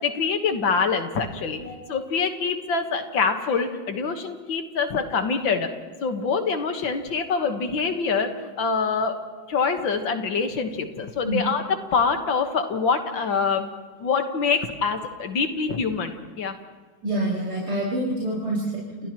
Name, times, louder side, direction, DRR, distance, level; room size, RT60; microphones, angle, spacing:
voice 1, 0.0-1.6 1.9-5.7 6.0-9.2 9.5-11.6 11.9-13.7 14.0-16.6, left 5 dB, 75° left, 6 dB, 2.2 m, -25 dB
voice 2, 17.0-19.1, right 1 dB, 35° right, -8 dB, 5.9 m, -27 dB
29.5 x 29.0 x 3.1 m, 1.4 s
omnidirectional pair, 2.1 m